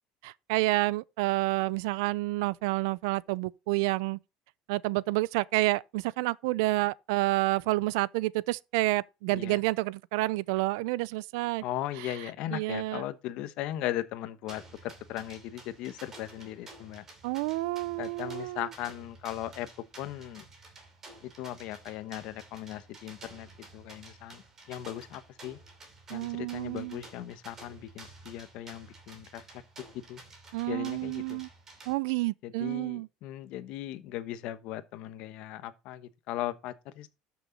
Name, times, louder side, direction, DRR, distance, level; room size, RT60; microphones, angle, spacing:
voice 1, 0.2-4.2 4.7-11.6 12.5-13.0 17.2-18.7 26.1-27.0 30.5-31.5 31.9-33.1, right 20 dB, 80° right, 0.4 m, -29 dB
voice 2, 9.3-9.6 11.6-17.0 18.0-19.7 20.0-20.4 21.2-24.4 24.7-25.6 26.1-29.6 29.9-30.2 30.7-31.4 32.4-37.1, left 13 dB, 50° left, 1.1 m, -38 dB
sound 1, 14.5-31.9, right 2 dB, 20° right, 2.7 m, -52 dB
13.0 x 6.2 x 4.0 m
cardioid pair, 175°, 2 cm